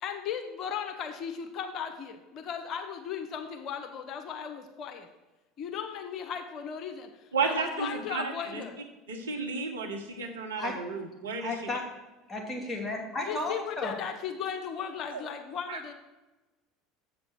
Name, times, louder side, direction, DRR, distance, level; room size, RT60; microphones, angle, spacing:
voice 1, 0.0-5.1 5.6-8.8 13.3-15.9, left 7 dB, 45° left, 6 dB, 0.9 m, -36 dB
voice 2, 7.3-8.6 9.1-11.5 15.1-15.2 15.7-15.9, right 4 dB, 75° right, 2 dB, 1.2 m, -33 dB
voice 3, 11.4-11.8 12.3-13.9, left 2 dB, 15° left, -1 dB, 2.5 m, -33 dB
7.8 x 6.1 x 6.1 m, 1.1 s
figure-of-eight pair, 70°, 0 cm